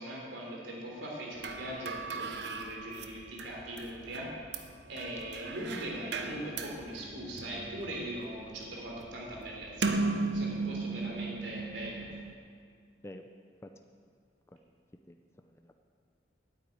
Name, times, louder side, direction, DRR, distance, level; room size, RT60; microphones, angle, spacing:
voice 1, 0.0-4.3 4.9-10.0 10.3-12.1, right 1 dB, 85° right, -3 dB, 3.4 m, -40 dB
sound 1, 1.4-12.3, right 3 dB, 70° right, 0.8 m, -37 dB
voice 2, 11.1-11.4 13.0-13.7 15.1-15.7, left 1 dB, 15° left, 5 dB, 0.4 m, -50 dB
9.1 x 8.6 x 9.1 m, 2.2 s
head